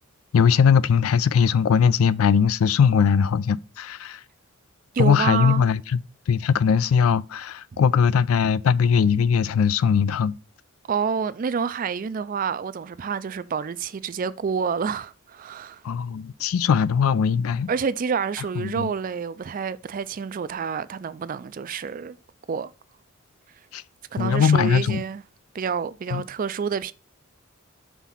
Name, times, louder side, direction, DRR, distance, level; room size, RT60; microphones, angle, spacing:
voice 1, 0.3-4.2 5.0-6.0 6.3-10.3 15.8-17.7 18.6-18.9 23.7-23.8 24.2-25.0 26.1-26.2, left 6 dB, 80° left, 0.4 m, -20 dB
voice 2, 4.9-5.7 10.9-15.8 17.7-22.2 22.5-22.7 24.1-25.2 25.5-26.9, right 6 dB, 40° right, 0.3 m, -28 dB
5.9 x 3.6 x 5.5 m
head